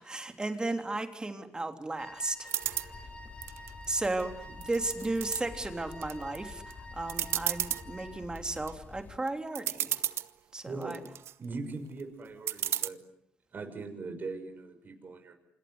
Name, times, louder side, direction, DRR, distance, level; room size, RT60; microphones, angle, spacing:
voice 1, 0.0-2.9 3.9-4.3 4.6-6.6 6.9-10.0 10.5-11.0, right 2 dB, 15° right, 6 dB, 3.4 m, -34 dB
Wind instrument woodwind instrument, 2.0-8.3, left 1 dB, 25° left, 6.7 m, -50 dB
sound 1, 2.5-2.9 3.4-4.2 4.6-5.4 5.9-6.4 6.7-6.8 7.1-7.8 8.4-8.7 9.3-9.4 9.5-10.3 10.8-11.3 12.5-12.9, right 10 dB, 70° right, 1.2 m, -32 dB
sound 2, 2.6-9.2, left 4 dB, 40° left, 3.1 m, -49 dB
voice 2, 10.7-11.0 11.4-13.0 13.5-15.3, right 3 dB, 40° right, 5 dB, 6.4 m, -40 dB
28.0 x 26.5 x 8.1 m, 0.71 s
cardioid pair, 90°, 5 cm